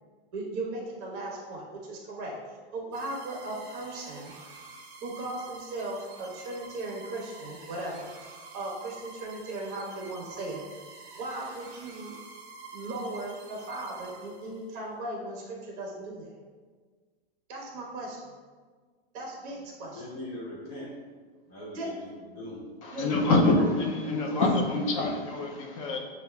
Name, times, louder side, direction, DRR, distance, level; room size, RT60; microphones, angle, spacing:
voice 1, 0.3-2.4 2.7-4.3 5.0-8.1 8.5-10.8 11.2-12.1 12.7-16.3 17.5-18.2 19.1-20.0 21.7-21.9 22.9-23.8 24.1-24.4, right 2 dB, 35° right, -2 dB, 1.1 m, -37 dB
sound 1, 2.9-14.8, right 3 dB, 55° right, 1.4 m, -48 dB
voice 2, 19.9-20.9 21.5-22.6, left 1 dB, 65° left, -6 dB, 1.4 m, -41 dB
voice 3, 22.8-26.0, left 2 dB, 30° left, 0 dB, 0.5 m, -25 dB
7.0 x 2.4 x 2.2 m, 1.5 s
supercardioid pair, 160°, 33 cm